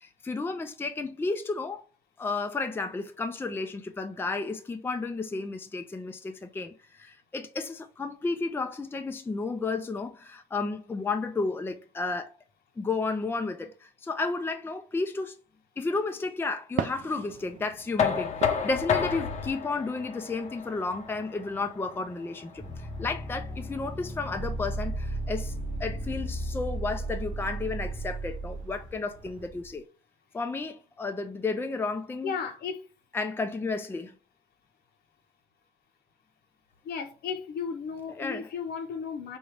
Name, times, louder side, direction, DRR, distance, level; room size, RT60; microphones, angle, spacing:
voice 1, 0.0-1.8 2.2-12.3 12.8-15.3 15.8-29.9 30.3-32.4 33.1-34.1 38.1-38.5, left 3 dB, 15° left, 0.5 m, -32 dB
sound 1, 16.7-29.5, right 10 dB, 50° right, 0.4 m, -44 dB
Knock, 18.0-23.8, left 7 dB, 45° left, 0.8 m, -31 dB
sound 2, 22.6-29.7, right 1 dB, 5° right, 1.0 m, -35 dB
voice 2, 32.2-32.9 36.8-39.4, left 6 dB, 70° left, 1.0 m, -34 dB
4.7 x 2.7 x 3.3 m
cardioid pair, 110°, 17 cm